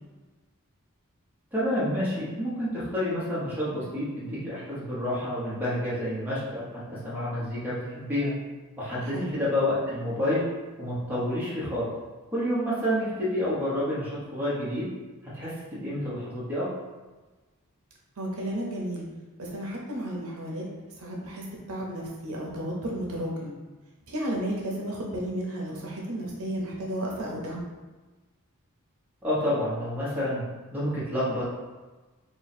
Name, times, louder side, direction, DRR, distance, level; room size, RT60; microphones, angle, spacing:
voice 1, 1.5-8.3 8.8-10.4 10.8-11.9 12.3-14.9 15.2-16.7 29.2-30.4 30.7-31.4, left 1 dB, 10° right, -9 dB, 1.1 m, -29 dB
voice 2, 9.0-9.4 18.2-19.1 19.4-20.6 21.0-23.5 24.1-27.6, right 1 dB, 80° right, -3 dB, 0.8 m, -33 dB
3.1 x 2.4 x 4.1 m, 1.2 s
head